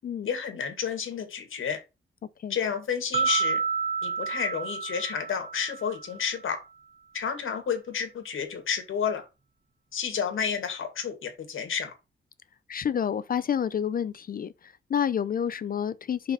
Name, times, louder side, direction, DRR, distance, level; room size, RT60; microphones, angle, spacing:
voice 1, 0.2-1.8 2.5-3.6 4.0-6.6 7.1-9.2 9.9-11.9, left 7 dB, 75° left, 2.2 m, -30 dB
sound 1, 3.1-6.3, right 5 dB, 30° right, 1.3 m, -30 dB
voice 2, 12.7-16.3, left 8 dB, 45° left, 0.5 m, -29 dB
5.5 x 4.8 x 5.6 m
wide cardioid pair, 155°, 21 cm